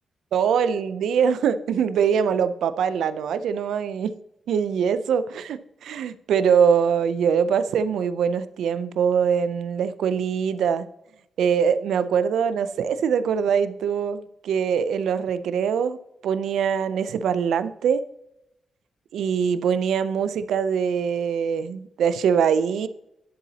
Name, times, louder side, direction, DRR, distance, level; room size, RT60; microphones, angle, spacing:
voice 1, 0.3-4.1 4.5-10.9 11.4-16.0 16.2-18.0 19.1-22.9, right 7 dB, 90° right, 0.5 m, -23 dB
10.5 x 8.0 x 2.8 m
wide cardioid pair, 135°, 0 cm